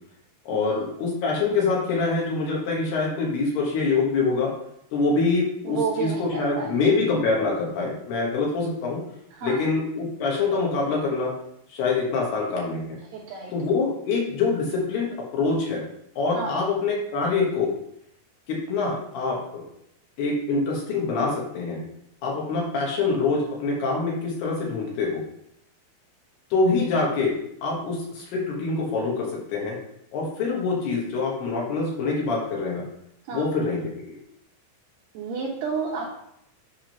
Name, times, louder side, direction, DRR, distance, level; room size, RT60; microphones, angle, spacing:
voice 1, 0.5-4.5 4.9-9.0 9.4-11.3 11.7-13.0 13.5-15.8 16.2-17.7 18.5-19.6 20.2-21.8 22.2-25.2 26.5-29.8 30.1-32.9 33.3-34.1, left 3 dB, 65° left, -3 dB, 3.0 m, -25 dB
voice 2, 5.7-6.7 9.4-9.6 13.1-13.5 16.4-16.6 33.3-33.5 35.1-36.1, right 5 dB, 75° right, -1 dB, 2.6 m, -30 dB
9.0 x 3.7 x 5.7 m, 0.76 s
omnidirectional pair, 5.6 m